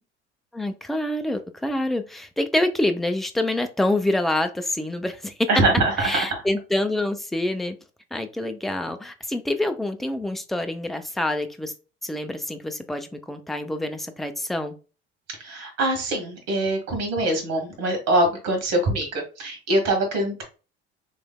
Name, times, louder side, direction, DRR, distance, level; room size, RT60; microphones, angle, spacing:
voice 1, 0.5-5.5 6.0-7.8 8.1-11.7 12.0-14.8, left 1 dB, ahead, 7 dB, 0.4 m, -26 dB
voice 2, 5.5-6.2 15.3-20.4, right 1 dB, 50° right, 4 dB, 1.4 m, -23 dB
3.2 x 3.1 x 2.3 m, 0.33 s
figure-of-eight pair, 60°, 32 cm